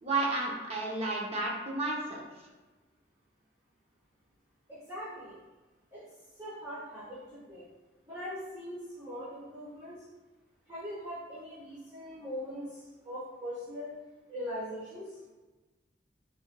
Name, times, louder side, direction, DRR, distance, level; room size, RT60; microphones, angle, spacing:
voice 1, 0.0-2.2, right 2 dB, 35° right, -2 dB, 0.8 m, -32 dB
voice 2, 4.7-5.4 5.9-6.0 6.4-7.6 8.1-10.0 10.7-13.9 14.3-15.2, equal, 15° right, -13 dB, 1.2 m, -41 dB
4.3 x 3.7 x 2.2 m, 1.2 s
head